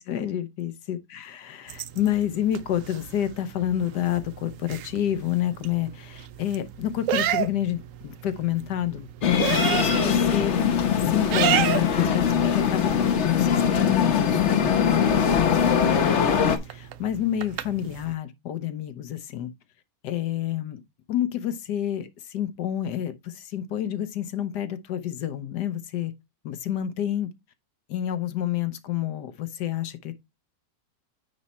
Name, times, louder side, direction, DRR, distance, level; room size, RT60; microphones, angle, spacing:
voice 1, 0.0-10.6 11.0-16.3 16.6-19.5 20.0-20.8 21.1-26.1 26.4-27.3 27.9-30.1, left 11 dB, 70° left, 1.4 m, -29 dB
sound 1, 1.7-18.1, right 11 dB, 75° right, 0.7 m, -33 dB
sound 2, 9.2-16.6, left 7 dB, 50° left, 1.0 m, -22 dB
9.4 x 3.2 x 4.2 m
omnidirectional pair, 1.9 m